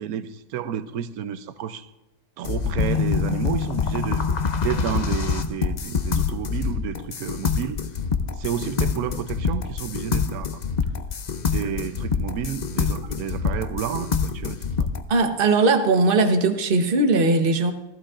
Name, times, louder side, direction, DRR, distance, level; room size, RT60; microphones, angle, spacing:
voice 1, 0.0-1.9 2.4-4.2 4.6-7.8 8.4-10.6 11.5-14.9, right 9 dB, 75° right, 1.1 m, -30 dB
sound 1, 2.4-15.0, left 6 dB, 75° left, 0.4 m, -26 dB
voice 2, 15.1-17.7, right 3 dB, 40° right, 1.1 m, -19 dB
15.0 x 14.5 x 2.5 m
omnidirectional pair, 1.6 m